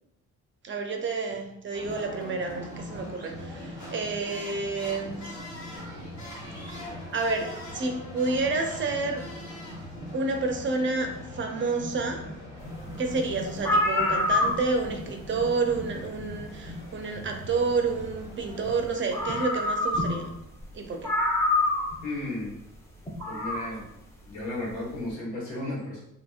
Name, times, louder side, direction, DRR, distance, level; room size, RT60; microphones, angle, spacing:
voice 1, 0.6-5.3 7.1-7.5 7.7-9.2 10.1-12.3 13.0-20.3 20.7-21.1, right 3 dB, 40° right, 4 dB, 0.5 m, -29 dB
sound 1, 1.7-19.3, left 1 dB, 65° left, 1.4 m, -40 dB
sound 2, 13.2-13.3 13.5-14.9 16.3-16.4 18.7-18.8 19.1-20.3 20.6-20.7 21.0-22.0 23.1-23.7, left 2 dB, 10° left, 0.7 m, -26 dB
voice 2, 22.0-22.6 23.2-23.8 24.2-26.0, left 2 dB, 80° left, -5 dB, 1.5 m, -34 dB
2.8 x 2.7 x 2.3 m, 0.80 s
cardioid pair, 90°, 30 cm